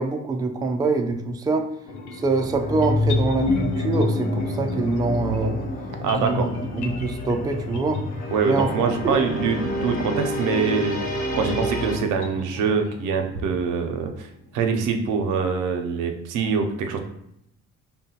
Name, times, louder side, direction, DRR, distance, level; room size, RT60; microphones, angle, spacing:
voice 1, 0.0-1.7 2.1-5.6 6.2-6.5 6.7-8.0 8.4-8.7 9.0-9.2, right 3 dB, 15° right, 4 dB, 0.3 m, -24 dB
sound 1, 1.9-14.0, left 3 dB, 90° left, 0.6 m, -30 dB
sound 2, 2.4-12.0, right 1 dB, 30° left, 0.9 m, -31 dB
voice 2, 6.0-6.5 8.3-11.0 11.3-14.3 14.5-17.0, right 5 dB, 85° right, 5 dB, 0.5 m, -24 dB
3.6 x 2.2 x 2.8 m, 0.77 s
cardioid pair, 90°, 30 cm